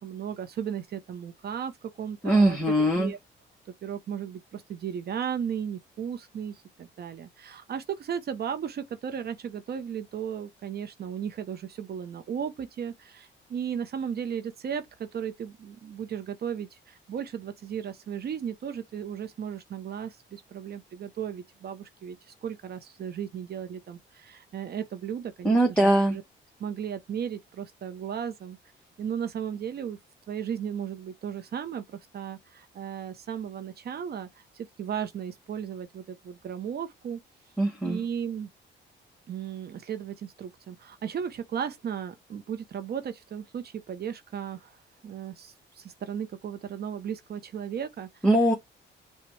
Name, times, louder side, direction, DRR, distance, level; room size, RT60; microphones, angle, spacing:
voice 1, 0.0-2.6 3.0-3.2 3.8-26.2 26.6-28.6 29.0-30.0 30.3-37.2 37.8-38.5 39.3-48.3, right 8 dB, 55° right, 0.7 m, -35 dB
voice 2, 2.2-3.1 25.4-26.2 37.6-38.0 48.2-48.5, right 1 dB, 5° left, 1.1 m, -21 dB
5.9 x 2.2 x 3.1 m
cardioid pair, 90°, 20 cm